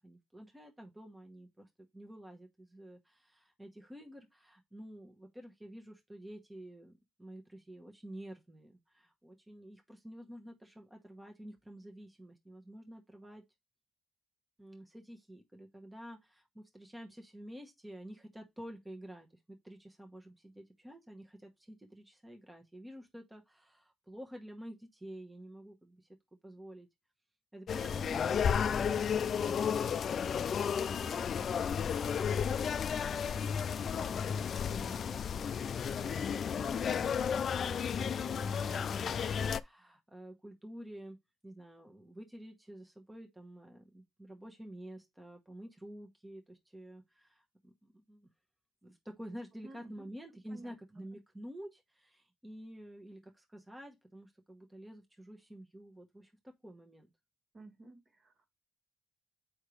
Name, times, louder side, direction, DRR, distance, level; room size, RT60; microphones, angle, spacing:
voice 1, 0.0-13.4 14.6-26.1 26.4-26.9 27.5-29.6 30.3-34.3 34.6-41.2 41.4-48.3 48.8-57.1, equal, 15° right, 1.1 m, -50 dB
sound 1, 27.7-39.6, left 7 dB, 55° left, 0.4 m, -33 dB
voice 2, 49.6-50.1 50.5-51.0 57.5-58.5, right 2 dB, 40° right, 1.4 m, -53 dB
6.4 x 5.0 x 3.2 m
cardioid pair, 90°, 0 cm